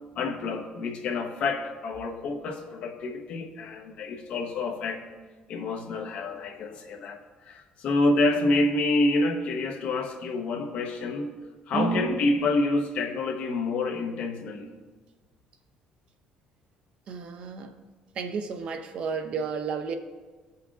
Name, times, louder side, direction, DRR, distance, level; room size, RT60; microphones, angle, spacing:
voice 1, 0.1-5.0 5.5-11.3 11.7-14.7, left 2 dB, 55° left, 1.0 m, -28 dB
voice 2, 11.7-12.2 17.1-17.8 18.2-19.9, right 5 dB, 45° right, 0.6 m, -31 dB
15.5 x 5.6 x 2.5 m
cardioid pair, 160°, 3 cm